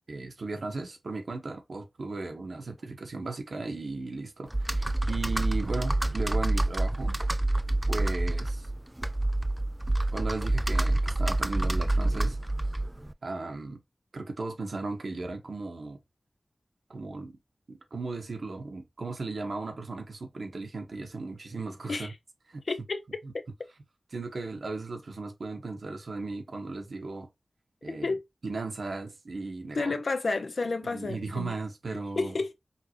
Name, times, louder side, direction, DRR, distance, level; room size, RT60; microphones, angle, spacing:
voice 1, 0.1-7.2 7.9-8.7 10.1-12.4 13.2-13.8 14.1-16.0 16.9-17.4 17.7-22.1 22.5-22.6 24.1-27.3 27.8-28.1 28.4-29.9 30.9-32.3, right 3 dB, 80° right, 1.3 m, -36 dB
Computer keyboard, 4.5-13.1, right 1 dB, 15° right, 0.3 m, -27 dB
voice 2, 22.6-23.0 28.0-28.2 29.7-31.5 32.2-32.5, left 3 dB, 80° left, 0.7 m, -30 dB
5.6 x 2.7 x 2.9 m
wide cardioid pair, 65°, 0 cm